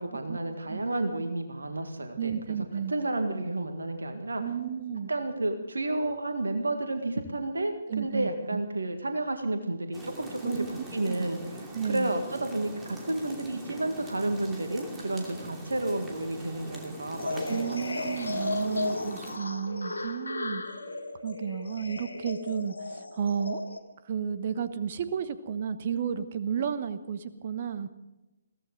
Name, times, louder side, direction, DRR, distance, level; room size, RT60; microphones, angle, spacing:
voice 1, 0.0-4.4 5.1-10.6 10.9-11.4 11.9-18.1, right 2 dB, 70° right, 6 dB, 1.9 m, -31 dB
voice 2, 2.2-2.9 4.4-5.1 7.9-8.6 10.4-11.3 11.7-12.1 17.5-20.6 21.2-23.8 24.0-27.9, right 7 dB, 40° right, 12 dB, 1.1 m, -32 dB
sound 1, 9.9-19.4, right 1 dB, 10° right, 2.7 m, -43 dB
sound 2, 17.2-23.8, left 2 dB, 75° left, 2.0 m, -35 dB
22.0 x 16.5 x 4.0 m, 1.0 s
figure-of-eight pair, 135°, 0 cm